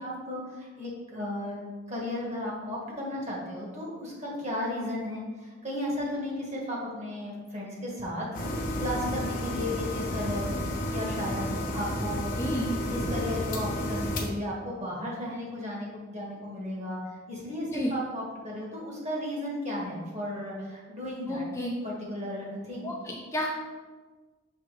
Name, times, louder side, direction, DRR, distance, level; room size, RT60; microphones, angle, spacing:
voice 1, 0.0-1.6 1.9-8.5 8.8-12.4 12.9-17.0 17.3-21.5 21.8-22.9, left 1 dB, 35° right, -3 dB, 1.6 m, -34 dB
sound 1, 8.3-14.3, left 1 dB, 45° left, 0.9 m, -31 dB
voice 2, 12.4-12.8 17.7-17.9 21.3-21.7 22.8-23.5, equal, 15° left, -1 dB, 0.5 m, -31 dB
6.0 x 3.5 x 4.8 m, 1.4 s
head